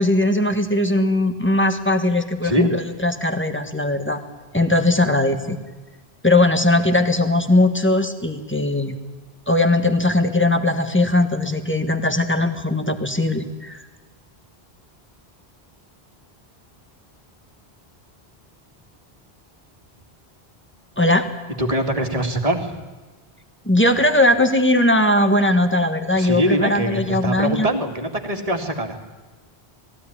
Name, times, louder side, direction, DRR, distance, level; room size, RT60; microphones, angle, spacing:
voice 1, 0.0-4.2 4.5-5.6 6.2-8.9 9.5-13.8 21.0-21.3 23.6-27.7, left 1 dB, 10° left, 7 dB, 1.5 m, -19 dB
voice 2, 21.6-22.8 26.1-29.0, equal, 35° right, 4 dB, 2.3 m, -23 dB
19.5 x 16.0 x 10.0 m, 1.3 s
omnidirectional pair, 1.1 m